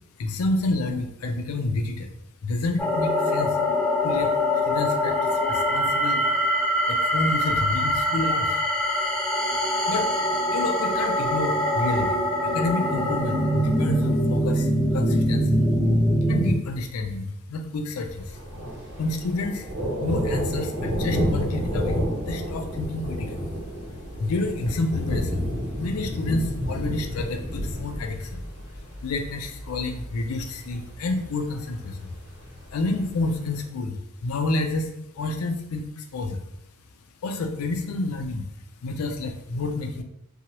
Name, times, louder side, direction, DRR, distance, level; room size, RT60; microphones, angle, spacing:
voice 1, 0.2-2.1 2.4-3.6 4.0-4.4 4.6-6.3 6.9-8.6 9.9-10.1 10.5-15.6 16.3-18.4 19.0-19.7 20.0-23.5 24.2-25.5 25.8-28.4 29.0-32.2 32.7-36.5 37.2-38.5 38.8-40.0, left 2 dB, 85° left, 6 dB, 0.4 m, -29 dB
sound 1, 2.8-16.6, left 1 dB, 5° left, 0.4 m, -23 dB
Thunder, 18.1-33.6, equal, 65° right, 1.0 m, -31 dB
2.9 x 2.3 x 2.8 m, 0.81 s
head